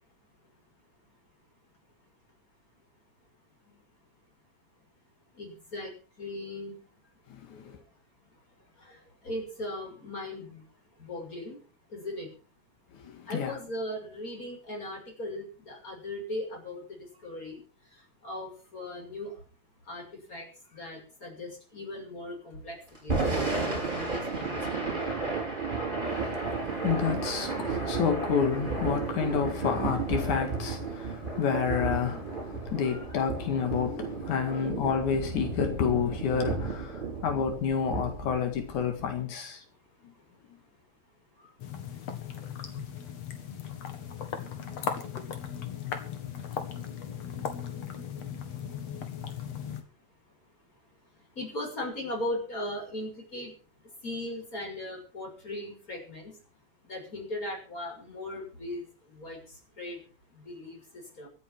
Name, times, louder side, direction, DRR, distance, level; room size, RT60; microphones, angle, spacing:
voice 1, 5.4-5.9 6.2-6.8 9.2-10.6 11.0-11.6 11.9-12.3 13.3-16.8 17.2-17.6 18.2-19.3 19.9-20.4 20.7-22.8 23.0-24.9 29.6-29.7 32.8-33.0 34.5-34.6 51.4-53.5 54.0-56.3 56.9-58.8 59.2-59.4 59.8-60.0 60.5-61.3, left 1 dB, 25° left, 6.6 m, -38 dB
voice 2, 7.3-7.8 13.0-13.6 26.0-39.6, left 7 dB, 90° left, 3.5 m, -30 dB
Thunder / Rain, 23.0-39.2, right 4 dB, 15° right, 5.1 m, -33 dB
sound 1, 41.6-49.8, left 8 dB, 60° left, 2.8 m, -37 dB
25.0 x 8.4 x 4.7 m
omnidirectional pair, 3.3 m